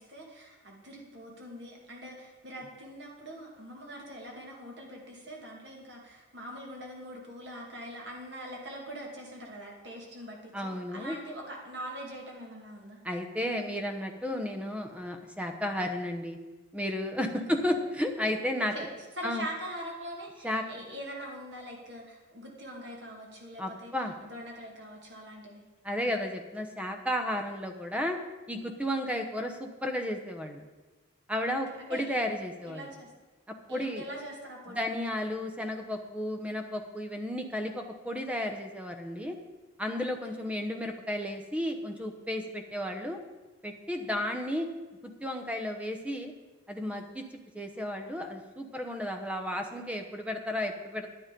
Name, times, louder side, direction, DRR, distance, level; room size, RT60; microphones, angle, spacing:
voice 1, 0.0-13.0 17.5-17.8 18.6-23.9 24.2-25.6 31.4-32.1 32.7-33.1 33.7-34.9 40.3-40.5 44.0-44.2, equal, 60° right, -1 dB, 2.5 m, -43 dB
voice 2, 10.5-11.2 13.0-16.4 16.7-18.7 19.2-19.4 20.4-20.6 23.6-24.1 25.8-28.2 28.5-30.6 31.3-32.9 33.7-34.0 34.7-39.4 39.8-43.2 43.6-44.7 45.0-46.3 46.7-47.2 47.5-51.1, left 1 dB, 5° right, 5 dB, 0.9 m, -33 dB
10.5 x 10.0 x 5.3 m, 1.2 s
head